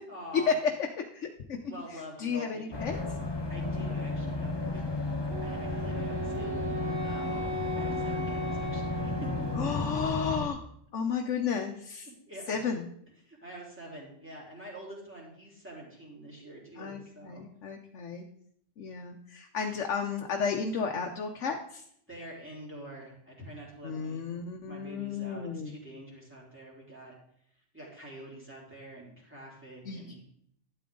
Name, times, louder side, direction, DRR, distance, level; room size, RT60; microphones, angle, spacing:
voice 1, 0.1-0.6 1.6-5.1 5.4-6.5 7.0-7.5 7.8-9.1 12.3-12.6 13.2-17.4 22.1-24.2 24.6-27.2 27.7-30.2, right 1 dB, 10° right, -5 dB, 3.6 m, -46 dB
voice 2, 1.1-1.6 2.2-3.0 3.7-3.9 4.7-4.8 9.6-10.6 10.9-12.1 12.5-12.8 16.8-18.2 18.8-21.8 23.8-25.7 29.8-30.0, left 6 dB, 85° left, 2 dB, 1.2 m, -33 dB
sound 1, 2.7-10.5, left 2 dB, 25° left, 1.0 m, -33 dB
Wind instrument woodwind instrument, 5.3-10.1, equal, 65° right, 4.0 m, -37 dB
12.0 x 8.6 x 3.9 m, 0.70 s
omnidirectional pair, 1.2 m